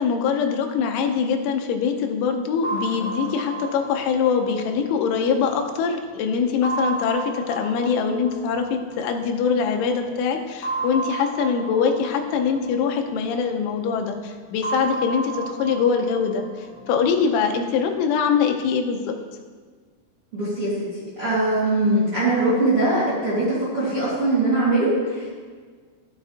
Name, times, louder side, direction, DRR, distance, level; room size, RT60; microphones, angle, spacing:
voice 1, 0.0-19.2, left 6 dB, 80° left, 4 dB, 2.9 m, -23 dB
sound 1, 2.6-6.0 6.6-9.5 10.6-13.7 14.6-17.7, right 3 dB, 45° left, 3.7 m, -33 dB
voice 2, 20.3-25.3, right 2 dB, 75° right, -10 dB, 1.3 m, -22 dB
12.0 x 7.0 x 2.8 m, 1.6 s
omnidirectional pair, 5.8 m